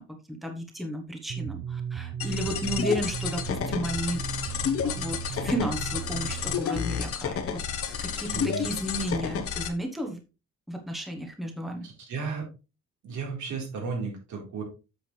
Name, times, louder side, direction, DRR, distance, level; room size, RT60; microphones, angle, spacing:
voice 1, 0.0-4.2 4.8-10.2 10.7-11.9, equal, ahead, 3 dB, 1.1 m, -33 dB
sound 1, 1.3-6.6, right 8 dB, 45° right, 0.7 m, -36 dB
sound 2, 2.2-9.7, left 7 dB, 50° left, 1.2 m, -31 dB
voice 2, 8.3-8.7 11.8-12.5 13.0-14.6, right 5 dB, 85° right, 0 dB, 4.0 m, -34 dB
8.2 x 7.2 x 3.3 m, 0.29 s
wide cardioid pair, 180°, 29 cm